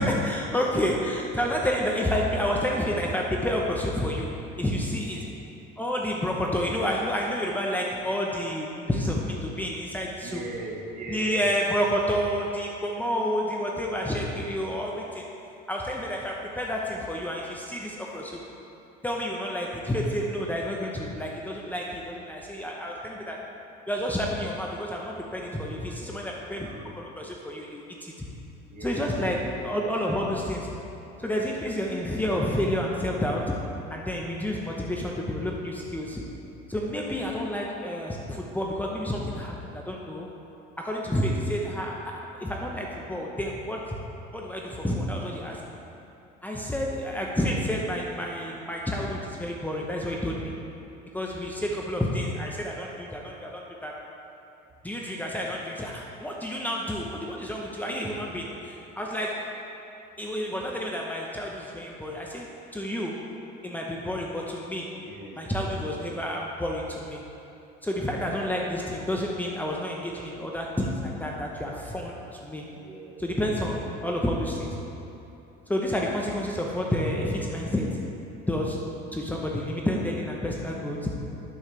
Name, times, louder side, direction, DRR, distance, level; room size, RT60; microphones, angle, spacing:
voice 1, 0.0-4.3 4.6-5.3 5.8-10.4 11.1-15.3 15.7-18.4 19.0-23.5 23.9-28.3 28.8-30.7 31.2-36.2 36.7-40.3 40.8-44.0 44.3-45.6 46.4-50.6 51.1-54.0 54.8-59.6 60.2-63.3 63.6-65.0 65.4-67.2 67.8-72.7 73.2-74.8 75.7-78.1 78.5-81.1, equal, 10° left, -2 dB, 0.8 m, -29 dB
voice 2, 10.2-11.4 26.6-27.0 28.7-29.1 46.9-47.0 51.2-51.6 64.9-65.4 66.0-66.2 68.2-68.4 72.7-73.2, right 2 dB, 40° right, -1 dB, 1.6 m, -40 dB
12.0 x 6.4 x 3.3 m, 2.9 s
supercardioid pair, 105°, 21 cm